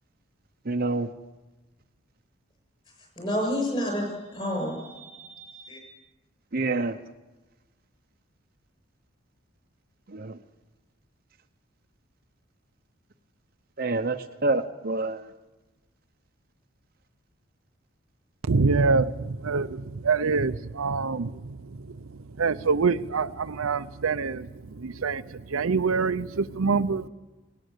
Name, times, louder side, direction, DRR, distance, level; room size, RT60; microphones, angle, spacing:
voice 1, 0.7-1.1 6.5-7.0 10.1-10.3 13.8-15.2, right 2 dB, 45° right, 0.8 m, -27 dB
voice 2, 3.2-5.8, equal, 25° left, 7.6 m, -30 dB
voice 3, 18.5-21.3 22.4-24.5 24.8-27.1, right 4 dB, 80° right, 0.7 m, -25 dB
18.5 x 18.0 x 8.1 m
head